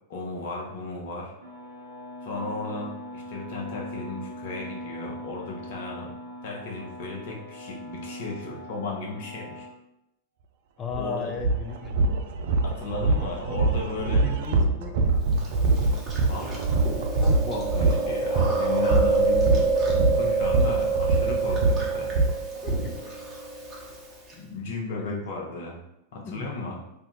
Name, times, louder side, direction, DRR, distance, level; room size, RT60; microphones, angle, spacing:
voice 1, 0.1-1.3 2.2-6.1 6.4-9.7 11.0-11.3 12.6-14.3 16.3-16.8 17.2-22.1 24.3-25.8 26.1-26.8, left 3 dB, 55° left, -1 dB, 0.8 m, -35 dB
sound 1, 1.4-9.7, equal, 75° left, 1.2 m, -40 dB
voice 2, 10.8-11.9 14.1-15.2 22.6-22.7 24.9-25.4 26.2-26.5, left 5 dB, 25° left, 4 dB, 0.3 m, -36 dB
sound 2, 10.9-11.0 11.4-22.8, right 3 dB, 55° right, 0.3 m, -24 dB
Chewing mastication, 15.4-24.3, right 3 dB, 20° right, 0.9 m, -27 dB
2.6 x 2.2 x 3.9 m, 0.86 s
figure-of-eight pair, 90°, 0 cm